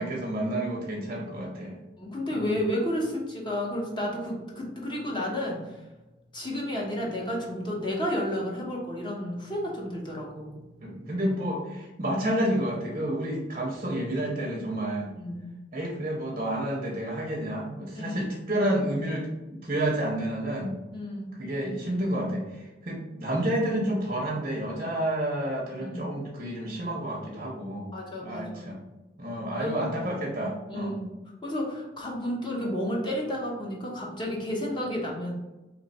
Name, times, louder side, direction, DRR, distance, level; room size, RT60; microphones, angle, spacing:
voice 1, 0.0-1.8 2.3-2.6 10.8-15.1 15.7-20.8 21.4-27.9 28.2-28.8 29.2-30.9, right 1 dB, 35° right, -2 dB, 0.6 m, -30 dB
voice 2, 2.0-5.8 6.3-10.6 12.0-12.1 15.2-15.5 17.9-18.3 20.9-21.3 25.8-26.1 27.9-28.8 29.6-29.9 30.7-31.1 31.4-35.3, equal, 25° left, -3 dB, 0.8 m, -32 dB
3.2 x 3.0 x 4.0 m, 1.1 s
head